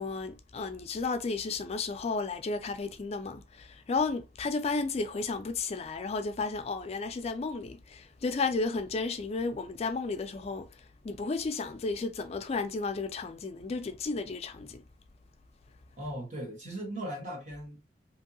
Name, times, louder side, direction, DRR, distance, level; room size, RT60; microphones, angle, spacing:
voice 1, 0.0-10.7 11.0-14.8, left 4 dB, 35° left, 0.4 m, -33 dB
voice 2, 16.0-17.8, right 1 dB, 45° right, 1.3 m, -38 dB
2.8 x 2.6 x 2.6 m
head